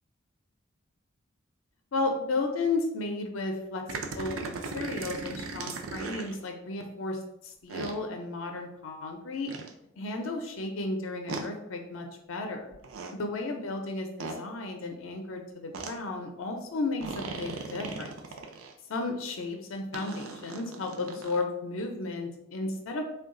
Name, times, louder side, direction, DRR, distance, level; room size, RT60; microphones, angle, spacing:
voice 1, 1.9-9.5 10.0-12.8 13.1-18.1 18.9-23.0, left 3 dB, 75° left, 4 dB, 0.5 m, -34 dB
sound 1, 3.9-6.4 7.7-8.0 9.5-9.7 11.3-11.5 12.7-13.1 14.2-14.4 15.7-15.9 17.0-18.7 19.9-21.4, right 4 dB, 90° right, 0.5 m, -38 dB
3.8 x 2.3 x 3.6 m, 0.82 s
head